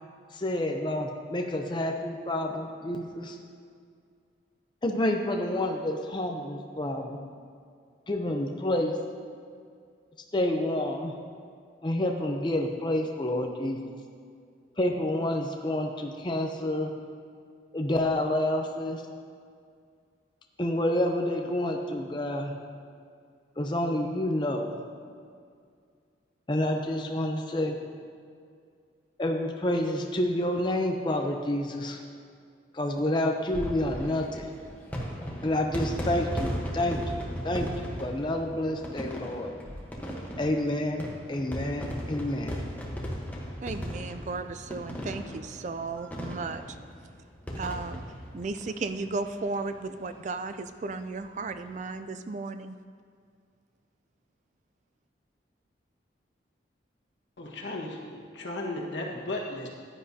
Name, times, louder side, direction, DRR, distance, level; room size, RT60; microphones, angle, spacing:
voice 1, 0.3-3.4 4.8-7.2 8.1-9.0 10.3-11.1 11.8-13.9 14.8-16.9 17.7-19.0 20.6-22.5 23.6-24.7 26.5-27.8 29.2-32.0 32.7-34.5 35.4-39.5 40.4-42.6, left 1 dB, 25° left, 2 dB, 0.6 m, -29 dB
sound 1, 33.4-49.4 49.7-49.8 50.0-50.1 51.4-51.7, equal, 10° left, 1.0 m, -37 dB
voice 2, 43.6-46.8 47.6-48.0 48.3-52.7, right 3 dB, 40° right, 10 dB, 0.4 m, -35 dB
voice 3, 57.4-59.7, left 2 dB, 75° left, -1 dB, 1.5 m, -35 dB
15.0 x 10.0 x 2.8 m, 2.2 s
head